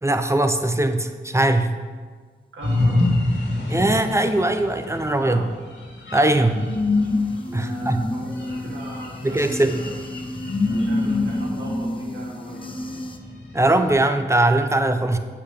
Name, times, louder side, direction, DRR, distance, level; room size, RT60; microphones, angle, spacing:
voice 1, 0.0-1.8 3.7-5.5 6.1-6.7 7.5-8.0 9.2-9.8 13.5-15.2, right 1 dB, 15° right, 8 dB, 0.9 m, -20 dB
voice 2, 2.5-3.0 5.2-5.4 7.4-9.9 10.7-13.0 14.9-15.2, right 1 dB, 85° right, -5 dB, 1.9 m, -38 dB
sound 1, 2.6-14.0, left 2 dB, 75° left, 2.5 m, -26 dB
sound 2, 6.5-13.2, left 1 dB, 25° left, 0.9 m, -35 dB
8.2 x 5.8 x 6.7 m, 1.5 s
cardioid pair, 40°, 20 cm